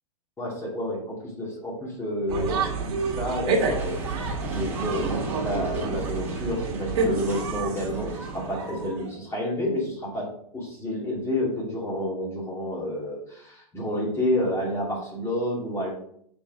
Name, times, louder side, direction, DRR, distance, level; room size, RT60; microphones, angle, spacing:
voice 1, 0.4-15.9, left 1 dB, 15° left, -4 dB, 2.6 m, -30 dB
sound 1, 2.3-9.2, right 4 dB, 50° right, 1.8 m, -29 dB
Explosion, 3.7-8.5, right 1 dB, 10° right, 2.0 m, -42 dB
5.2 x 5.1 x 5.0 m, 0.66 s
hypercardioid pair, 115°, 19 cm